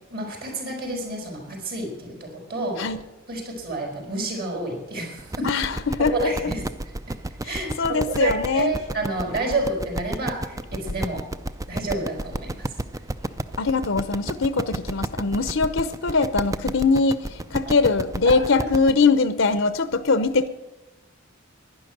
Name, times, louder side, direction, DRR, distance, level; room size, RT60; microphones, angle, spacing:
voice 1, 0.1-2.8 3.3-5.6 6.0-6.6 7.4-11.2 11.7-13.0 18.2-18.3, right 2 dB, 50° right, 4.7 m, -29 dB
sound 1, 5.2-18.9, right 2 dB, 15° right, 0.5 m, -31 dB
voice 2, 5.4-6.3 7.4-8.7 13.6-20.5, left 4 dB, 70° left, 0.8 m, -22 dB
11.5 x 11.0 x 9.2 m
head